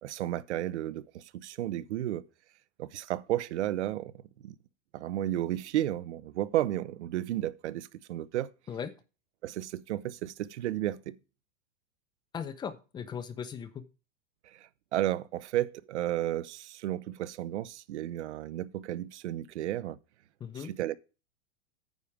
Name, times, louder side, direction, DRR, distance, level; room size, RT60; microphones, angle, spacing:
voice 1, 0.0-2.2 2.8-4.1 4.4-4.5 4.9-8.5 9.4-11.2 14.4-20.0 20.5-20.9, right 13 dB, 75° right, 0.9 m, -33 dB
voice 2, 12.3-13.8 20.4-20.7, left 7 dB, 10° left, 0.6 m, -38 dB
9.3 x 5.1 x 7.1 m
supercardioid pair, 155°, 35 cm